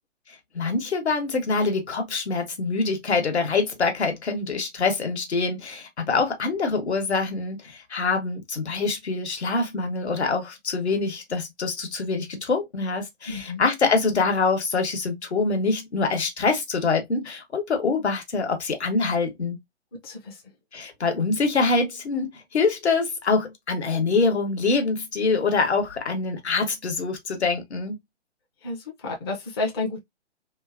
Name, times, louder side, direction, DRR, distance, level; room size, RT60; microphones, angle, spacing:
voice 1, 0.3-19.6 20.7-28.0, left 4 dB, 70° left, 1.1 m, -25 dB
voice 2, 13.3-13.6 19.9-20.4 28.6-30.0, left 3 dB, 20° left, 0.4 m, -31 dB
2.7 x 2.4 x 2.4 m
figure-of-eight pair, 135°, 35 cm